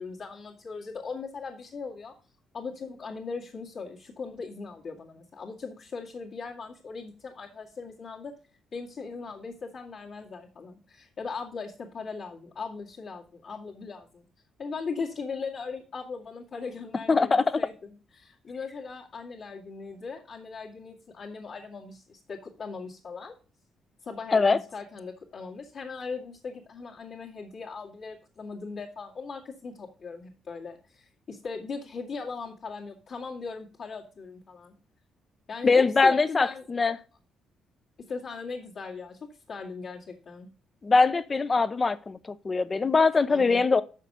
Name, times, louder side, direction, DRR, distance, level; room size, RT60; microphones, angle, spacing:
voice 1, 0.0-2.1 2.5-8.3 8.7-14.3 14.6-23.3 24.0-34.7 35.5-36.7 38.1-40.5 43.3-43.6, left 4 dB, 55° left, 2.1 m, -39 dB
voice 2, 17.1-17.6 24.3-24.6 35.6-37.0 40.8-42.2 42.4-43.8, left 4 dB, 30° left, 0.7 m, -22 dB
6.6 x 5.3 x 6.7 m
cardioid pair, 90°, 0 cm